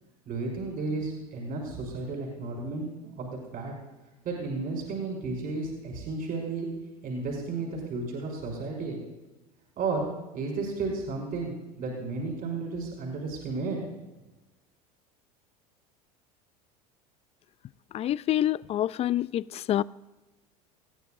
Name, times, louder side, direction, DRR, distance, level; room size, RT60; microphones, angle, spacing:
voice 1, 0.3-2.9 3.2-3.7 4.2-6.7 7.0-9.0 9.8-10.1 10.3-13.8, right 3 dB, 50° right, 5.9 m, -33 dB
voice 2, 17.9-19.4 19.7-19.8, left 12 dB, 30° left, 0.4 m, -26 dB
21.0 x 15.5 x 2.6 m
hypercardioid pair, 85°, 20 cm